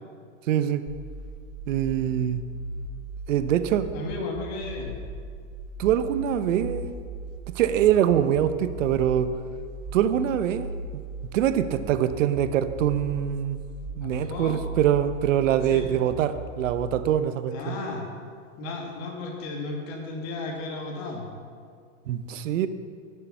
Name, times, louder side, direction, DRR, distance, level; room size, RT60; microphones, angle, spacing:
voice 1, 0.5-0.8 1.7-2.4 3.3-3.9 5.8-6.8 7.5-9.3 9.9-10.7 10.9-11.0 11.3-13.6 14.0-17.8 22.1-22.7, right 10 dB, 70° right, 11 dB, 0.9 m, -24 dB
sound 1, 0.9-16.9, right 2 dB, 25° right, 1.3 m, -38 dB
voice 2, 3.9-5.0 14.0-14.6 15.6-15.8 17.5-18.0 18.6-21.3, left 3 dB, 40° left, 0 dB, 2.4 m, -34 dB
17.5 x 6.9 x 5.6 m, 2.1 s
hypercardioid pair, 135°, 40 cm